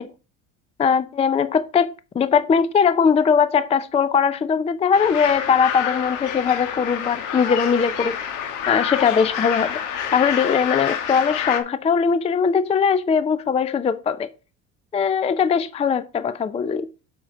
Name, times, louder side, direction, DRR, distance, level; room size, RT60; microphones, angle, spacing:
voice 1, 0.8-8.2 8.7-9.8 10.1-14.3 14.9-16.9, left 6 dB, 20° left, 0.4 m, -20 dB
sound 1, 4.9-11.6, left 8 dB, 65° left, 1.4 m, -28 dB
7.3 x 4.4 x 5.2 m
supercardioid pair, 100°, 33 cm